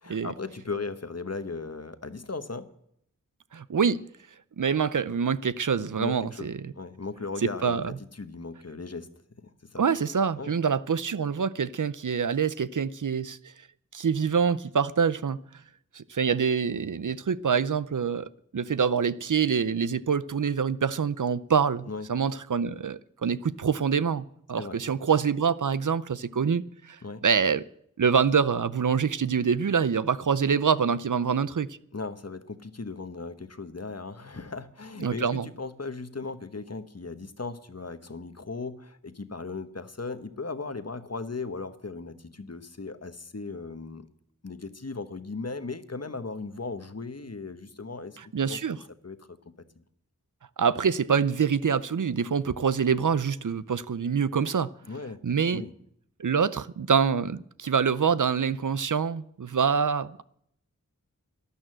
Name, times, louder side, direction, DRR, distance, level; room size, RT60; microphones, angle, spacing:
voice 1, 0.0-2.7 6.0-7.8 8.1-9.1 9.6-9.8 10.4-10.5 21.9-22.1 24.6-24.8 27.0-27.2 31.9-44.1 44.4-48.2 48.5-48.6 49.0-49.4 49.8-49.9 54.9-55.2 55.5-55.7, left 3 dB, 45° left, 1.1 m, -37 dB
voice 2, 3.5-4.0 4.6-6.7 7.6-8.0 9.8-13.4 13.9-15.4 15.9-27.7 28.0-31.7 35.0-35.5 48.3-48.8 50.6-54.7 55.2-55.6 56.2-60.2, right 6 dB, 65° right, 0.5 m, -26 dB
12.5 x 11.5 x 7.7 m
wide cardioid pair, 45°, 34 cm